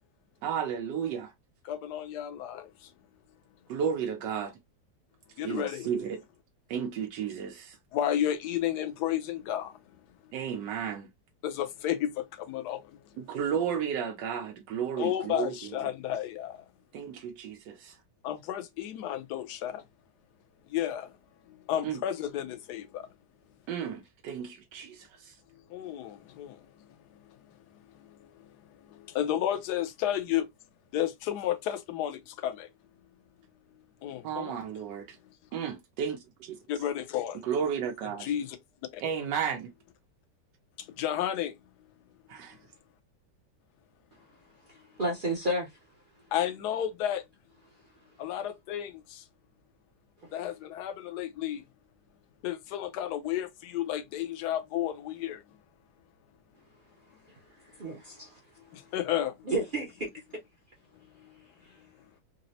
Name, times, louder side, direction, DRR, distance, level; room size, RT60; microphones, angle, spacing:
voice 1, 0.4-1.3 3.7-4.6 5.4-6.2 6.7-7.8 10.3-11.1 13.2-15.5 16.9-17.9 21.8-22.0 23.7-25.3 34.2-35.2 35.5-36.6 37.4-38.3 39.0-39.7 42.3-42.6, right 7 dB, 90° right, 1.3 m, -33 dB
voice 2, 1.7-2.7 5.4-5.9 7.9-9.7 11.4-12.8 15.0-16.6 18.2-19.8 20.7-21.1 21.7-23.0 25.7-26.5 29.1-30.5 30.9-32.7 34.0-34.6 36.7-37.4 38.2-38.5 41.0-41.5 46.3-47.2 48.2-48.9 50.3-51.6 52.4-55.4 58.9-59.3, left 11 dB, 75° left, 1.2 m, -31 dB
voice 3, 44.7-45.8 50.2-50.3 57.7-58.4 59.4-60.1 61.6-61.8, right 1 dB, 50° right, 0.6 m, -32 dB
4.0 x 2.0 x 2.6 m
omnidirectional pair, 1.9 m